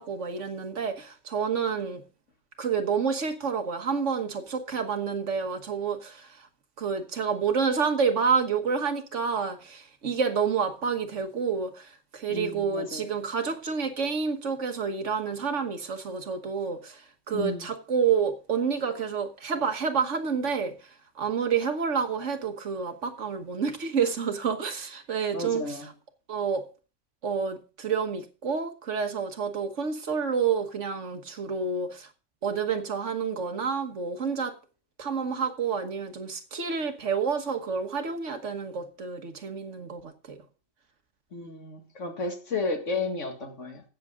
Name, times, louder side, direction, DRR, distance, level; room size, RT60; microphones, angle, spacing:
voice 1, 0.0-2.0 2.6-6.3 6.8-17.0 17.3-20.7 21.2-25.8 26.3-26.6 27.2-32.1 32.4-34.5 35.0-40.4, right 6 dB, 75° right, 1.7 m, -29 dB
voice 2, 12.3-13.1 17.3-17.7 25.3-25.9 41.3-43.8, left 3 dB, 85° left, 2.2 m, -32 dB
15.5 x 6.8 x 3.7 m
omnidirectional pair, 1.2 m